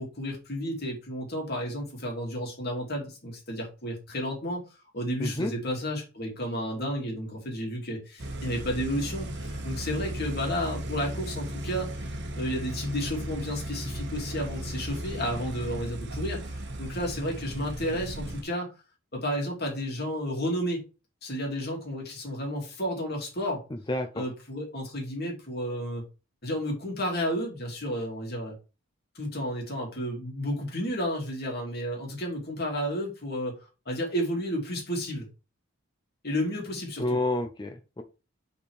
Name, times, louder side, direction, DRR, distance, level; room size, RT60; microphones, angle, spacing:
voice 1, 0.0-4.6 4.9-18.7 19.1-20.8 21.2-23.6 24.1-26.0 26.4-28.6 29.1-33.6 33.9-35.3 36.2-37.2, equal, 50° left, 0 dB, 2.6 m, -32 dB
sound 1, 8.2-18.4, right 1 dB, 55° right, 1.2 m, -36 dB
voice 2, 23.9-24.2 37.0-38.0, left 1 dB, 20° left, 7 dB, 0.6 m, -29 dB
5.7 x 4.4 x 4.7 m, 0.30 s
head